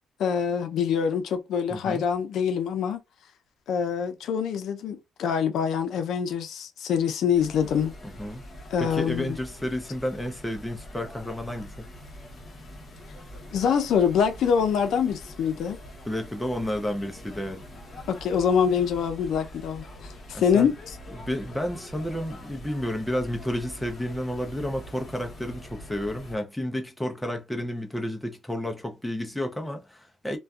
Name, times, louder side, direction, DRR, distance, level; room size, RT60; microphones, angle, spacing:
voice 1, 0.2-3.0 3.7-7.9 8.7-9.4 13.5-15.8 18.1-20.8, left 7 dB, 70° left, 0.5 m, -25 dB
voice 2, 1.7-2.0 8.0-8.4 8.8-11.9 16.1-17.6 20.3-20.7 21.1-30.4, left 1 dB, 5° left, 0.5 m, -31 dB
sound 1, 7.3-26.3, equal, 25° left, 0.9 m, -44 dB
2.5 x 2.2 x 2.3 m
cardioid pair, 125°, 0 cm